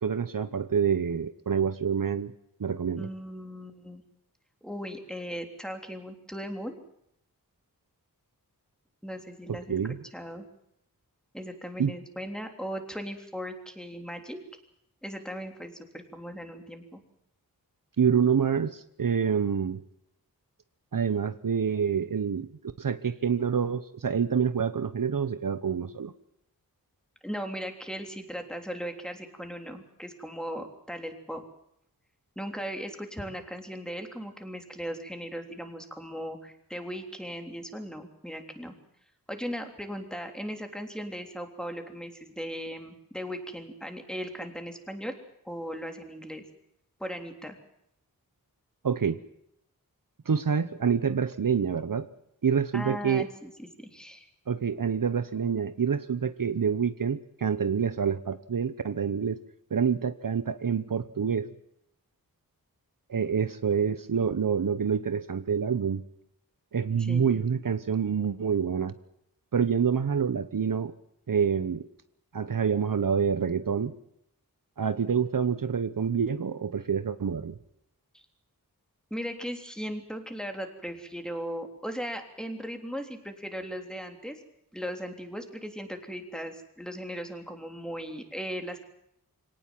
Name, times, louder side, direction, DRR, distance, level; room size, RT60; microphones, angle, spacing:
voice 1, 0.0-2.3 2.6-3.1 9.5-10.0 11.8-11.9 18.0-19.8 20.9-22.5 22.8-26.1 48.8-49.2 50.3-52.1 52.4-53.3 54.5-59.4 59.7-61.5 63.1-66.0 66.7-68.9 69.5-70.9 71.3-71.9 72.3-73.9 74.8-77.6, right 7 dB, 65° right, 12 dB, 1.0 m, -27 dB
voice 2, 3.0-4.0 4.6-6.8 9.0-9.8 10.1-10.5 11.3-14.4 15.0-17.0 27.2-31.4 32.4-38.8 39.3-45.1 45.5-46.4 47.0-47.6 52.7-54.3 67.0-67.5 78.1-78.2 79.1-84.4 84.7-88.8, equal, ahead, 5 dB, 3.4 m, -38 dB
24.5 x 18.0 x 7.6 m, 0.77 s
wide cardioid pair, 95°, 36 cm